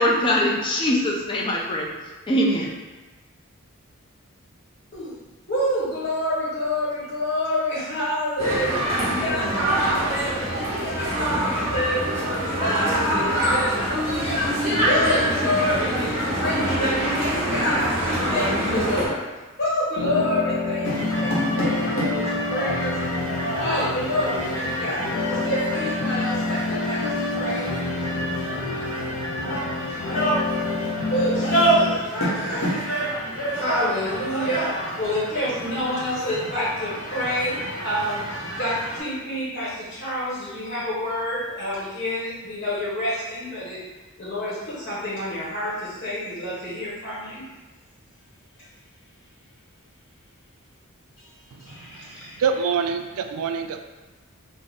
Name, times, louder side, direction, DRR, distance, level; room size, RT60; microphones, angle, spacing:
voice 1, 0.0-1.9 2.3-2.7, left 1 dB, 20° left, -3 dB, 0.4 m, -22 dB
voice 2, 5.5-14.6 14.8-19.2 19.6-23.0 23.5-27.0 27.3-27.7 30.6-30.7 31.1-32.8 33.5-43.8 44.2-47.4 51.2-51.3 51.6-52.4, left 1 dB, 40° left, -9 dB, 0.9 m, -28 dB
sound 1, 8.4-19.1, right 1 dB, 30° right, 0.8 m, -24 dB
sound 2, 20.0-32.0, left 3 dB, 80° left, 0.4 m, -28 dB
sound 3, 20.9-39.0, right 1 dB, 65° left, 0.8 m, -28 dB
voice 3, 51.9-53.8, right 6 dB, 80° right, 7 dB, 0.3 m, -26 dB
3.3 x 2.0 x 3.8 m, 1.2 s
head